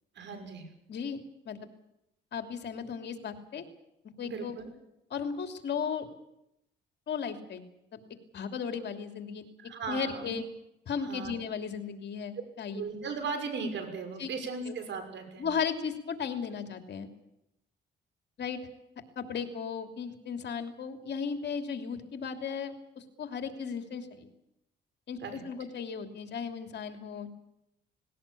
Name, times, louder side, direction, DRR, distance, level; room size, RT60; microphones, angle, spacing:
voice 1, 0.2-0.7 4.2-4.7 9.6-10.3 11.0-11.4 12.7-15.5 25.2-25.4, right 4 dB, 65° right, 7 dB, 5.9 m, -37 dB
voice 2, 0.9-1.7 2.3-3.6 4.0-4.5 5.1-6.1 7.1-7.6 7.9-8.0 8.3-9.5 9.9-10.4 10.8-12.8 14.2-14.3 14.6-14.7 15.4-17.1 18.4-18.6 19.2-24.3 25.1-27.3, left 6 dB, 60° left, 6 dB, 2.9 m, -36 dB
19.0 x 18.5 x 8.6 m, 0.83 s
cardioid pair, 90°, 20 cm